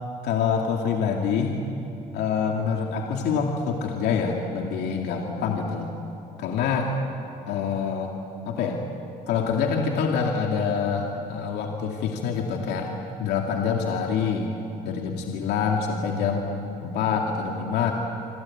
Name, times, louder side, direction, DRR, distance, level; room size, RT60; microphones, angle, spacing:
voice 1, 0.2-1.5 2.1-5.9 6.4-6.9 7.5-8.1 8.5-8.8 9.3-12.9 13.2-14.5 14.8-17.9, left 6 dB, 80° left, 1 dB, 2.4 m, -26 dB
26.5 x 25.0 x 8.7 m, 2.8 s
cardioid pair, 110°, 17 cm